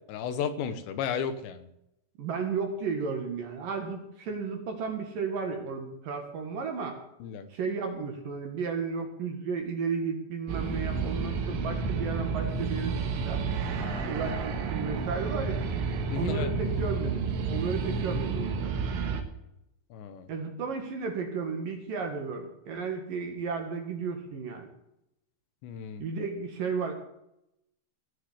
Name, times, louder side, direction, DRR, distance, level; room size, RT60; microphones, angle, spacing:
voice 1, 0.1-1.7 7.2-7.5 13.8-14.1 16.1-16.5 19.9-20.3 25.6-26.0, left 7 dB, 75° left, 10 dB, 3.2 m, -34 dB
voice 2, 2.2-7.0 7.5-12.9 13.2-13.4 14.0-15.7 16.1-18.7 20.3-24.7 26.0-26.9, right 5 dB, 55° right, 4 dB, 3.0 m, -33 dB
sound 1, 10.5-19.2, right 5 dB, 80° right, 4.1 m, -31 dB
19.0 x 6.8 x 9.6 m, 0.83 s
omnidirectional pair, 5.5 m